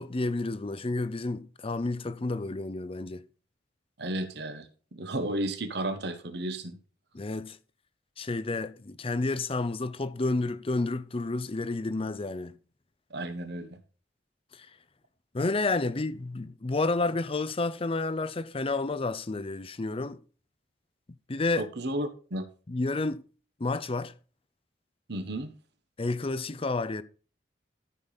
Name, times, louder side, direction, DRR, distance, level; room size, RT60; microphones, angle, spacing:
voice 1, 0.0-3.2 7.1-7.6 8.2-12.6 14.6-14.7 15.3-20.2 21.3-21.7 22.7-23.2 23.6-24.1 26.0-27.0, left 3 dB, 30° left, 0.6 m, -30 dB
voice 2, 4.0-6.8 13.1-13.8 21.6-22.5 25.1-25.5, right 1 dB, 65° right, 1.3 m, -33 dB
13.0 x 5.2 x 4.1 m
head